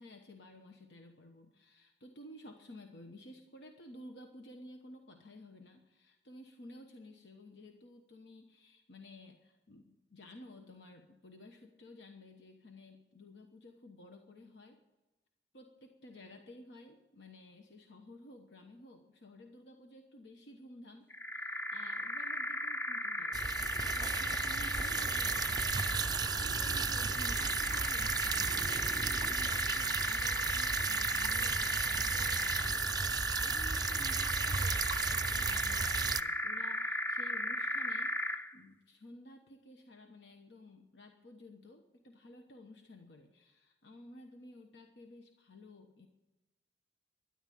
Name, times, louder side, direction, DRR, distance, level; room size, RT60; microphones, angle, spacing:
voice 1, 0.0-14.8 15.5-34.8 35.1-46.1, left 1 dB, 75° left, 4 dB, 1.1 m, -54 dB
sound 1, 21.1-38.5, left 1 dB, 10° left, 0.7 m, -36 dB
sound 2, 23.3-36.2, right 6 dB, 20° right, 0.4 m, -35 dB
13.0 x 11.0 x 9.2 m, 1.1 s
head